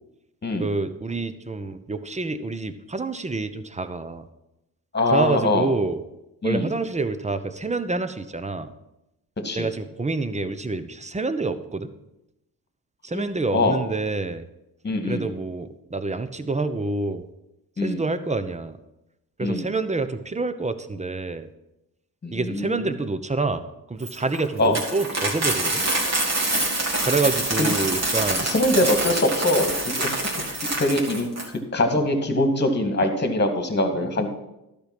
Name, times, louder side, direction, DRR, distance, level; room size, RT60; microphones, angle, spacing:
voice 1, 0.6-4.3 5.1-6.0 6.4-8.7 9.5-11.9 13.0-14.4 15.1-17.3 17.8-18.8 19.4-21.5 22.3-25.8 27.0-28.5, right 3 dB, 15° right, 12 dB, 0.8 m, -27 dB
voice 2, 4.9-5.7 6.4-6.7 9.4-9.7 13.1-13.8 14.8-15.3 17.8-18.0 19.4-19.7 22.2-22.9 24.6-24.8 27.6-27.7 28.4-30.2 30.8-31.3 31.7-34.3, left 1 dB, 25° left, 6 dB, 1.9 m, -23 dB
Coin (dropping), 24.0-31.5, right 1 dB, 35° right, 2.5 m, -25 dB
12.0 x 5.1 x 6.0 m, 0.92 s
hypercardioid pair, 50°, 43 cm